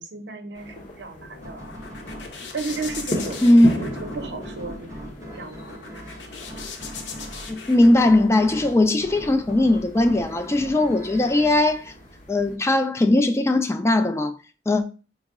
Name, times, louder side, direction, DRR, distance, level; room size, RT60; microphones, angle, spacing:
voice 1, 0.0-1.6 2.5-3.4 3.7-5.8, right 3 dB, 70° right, 0.7 m, -34 dB
sound 1, 0.5-12.6, equal, 45° left, 0.7 m, -38 dB
sound 2, 0.9-8.8, left 5 dB, 85° left, 0.7 m, -40 dB
sound 3, 1.4-12.7, equal, 20° right, 0.6 m, -41 dB
voice 2, 7.5-11.9 12.3-14.4 14.7-14.8, left 1 dB, 15° left, 0.3 m, -19 dB
4.5 x 2.0 x 3.5 m
head